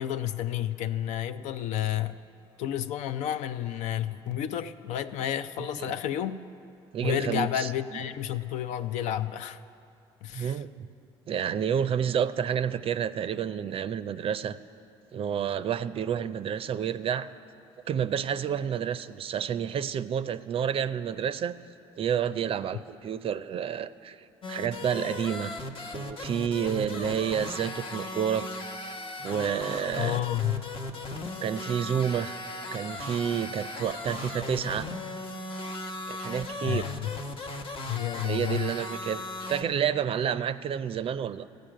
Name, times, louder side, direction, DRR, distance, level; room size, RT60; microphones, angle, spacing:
voice 1, 0.0-2.2 2.6-6.4 7.0-9.6 10.2-10.6 30.0-30.7 36.6-37.2 37.9-38.7, left 11 dB, 65° left, 0.4 m, -31 dB
voice 2, 6.9-7.7 10.3-10.9 11.3-14.6 15.1-17.3 17.9-21.6 22.0-25.5 25.9-28.5 29.2-30.2 31.4-32.4 32.7-34.9 36.1-36.9 38.2-41.5, right 8 dB, 45° right, 0.5 m, -29 dB
sound 1, 24.4-39.6, left 2 dB, 45° left, 1.0 m, -37 dB
14.5 x 5.2 x 9.1 m
hypercardioid pair, 65°, 13 cm